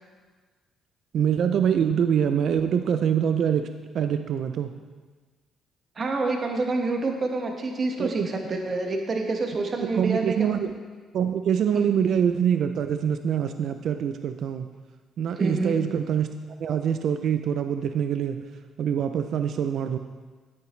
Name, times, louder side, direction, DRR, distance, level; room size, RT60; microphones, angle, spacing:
voice 1, 1.1-3.7 3.9-4.7 8.0-8.3 9.8-10.8 11.1-14.7 15.2-16.3 16.6-18.4 18.8-20.0, right 8 dB, 65° right, 8 dB, 0.4 m, -24 dB
voice 2, 5.9-10.5 11.7-11.9 15.4-15.8, right 3 dB, 45° right, 2 dB, 1.5 m, -27 dB
9.5 x 8.7 x 3.2 m, 1.4 s
supercardioid pair, 70°, 0 cm